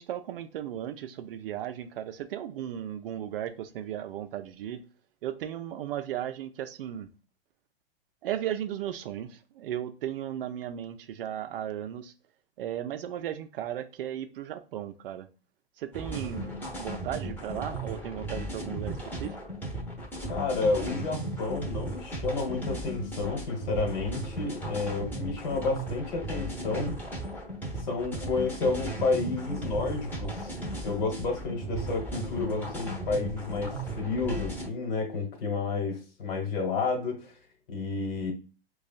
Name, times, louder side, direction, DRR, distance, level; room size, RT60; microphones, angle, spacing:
voice 1, 0.0-4.8 5.2-7.1 8.2-12.1 12.6-15.3 15.8-16.5 16.8-19.4, right 11 dB, 65° right, 0.5 m, -35 dB
sound 1, 15.9-34.7, right 1 dB, 5° left, 0.8 m, -36 dB
voice 2, 20.3-26.9 27.8-30.6 30.8-37.3 37.7-38.3, left 4 dB, 50° left, 1.3 m, -30 dB
5.1 x 2.3 x 2.4 m
hypercardioid pair, 130°, 31 cm